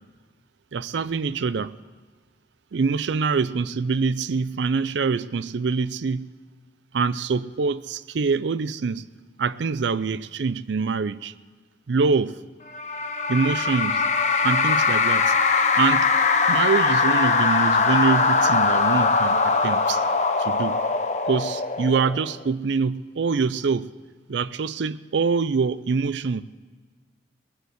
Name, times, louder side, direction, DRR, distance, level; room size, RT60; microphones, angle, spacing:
voice 1, 0.7-1.8 2.7-6.3 6.9-9.1 9.4-11.3 11.9-12.4 13.3-14.1 14.4-15.3 15.8-16.2 16.5-20.0 20.4-20.8 21.3-23.9 24.3-26.4, right 5 dB, 85° right, 0.5 m, -25 dB
sound 1, 12.7-22.4, left 4 dB, 40° left, 0.8 m, -21 dB
19.5 x 8.0 x 7.9 m
head